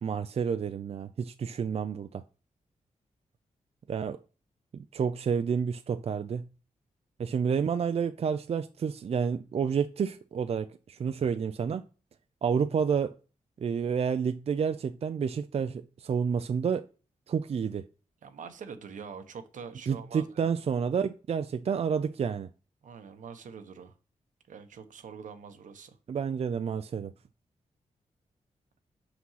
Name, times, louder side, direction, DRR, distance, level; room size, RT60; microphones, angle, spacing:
voice 1, 0.0-2.2 3.9-4.2 4.7-6.5 7.2-11.9 12.4-13.1 13.6-16.9 17.3-17.9 19.9-22.5 26.1-27.1, right 6 dB, 55° right, 0.5 m, -29 dB
voice 2, 18.2-20.5 22.8-23.9 24.5-26.0, right 6 dB, 85° right, 1.1 m, -44 dB
6.2 x 6.0 x 5.6 m
wide cardioid pair, 105°, 13 cm